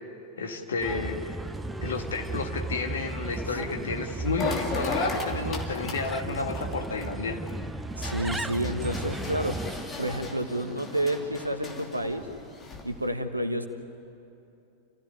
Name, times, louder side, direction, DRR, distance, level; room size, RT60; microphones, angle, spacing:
voice 1, 0.4-1.4 1.8-7.4, left 4 dB, 65° left, 4 dB, 2.1 m, -31 dB
Bird, 0.8-9.8, right 2 dB, 10° right, 0.8 m, -35 dB
voice 2, 3.5-4.0 8.0-12.2 12.8-13.7, right 1 dB, 85° right, 8 dB, 1.4 m, -30 dB
sound 1, 4.1-4.2 4.5-4.6 4.9-5.0 6.7-6.8 7.1-7.2 7.7-13.1, left 1 dB, 10° left, 3.0 m, -45 dB
sound 2, 4.4-7.5 7.9-13.0, left 3 dB, 25° left, 2.8 m, -36 dB
28.5 x 15.5 x 9.5 m, 2.8 s
figure-of-eight pair, 90°, 0 cm